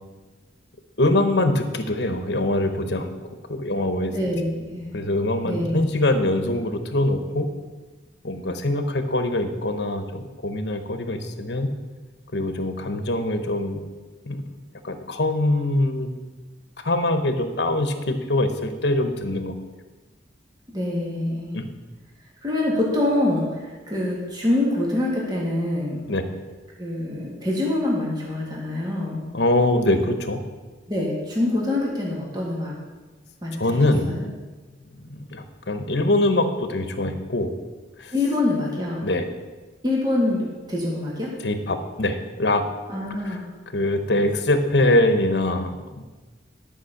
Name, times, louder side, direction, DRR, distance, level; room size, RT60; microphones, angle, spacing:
voice 1, 1.0-3.1 3.5-4.1 4.9-7.5 8.2-11.7 12.3-13.8 14.3-14.4 14.8-16.1 16.8-19.5 21.5-21.7 26.1-26.2 29.3-30.4 33.6-34.1 35.0-37.5 38.0-38.1 39.0-39.2 41.4-42.6 43.3-43.4 43.7-45.8, left 1 dB, 65° left, 8 dB, 1.0 m, -23 dB
voice 2, 4.1-5.0 5.4-6.0 20.7-21.5 22.4-26.0 26.8-29.2 30.9-32.7 33.4-34.3 38.1-39.0 39.8-41.3 42.9-43.4, left 1 dB, 20° right, -4 dB, 1.8 m, -25 dB
11.5 x 5.3 x 6.5 m, 1.3 s
head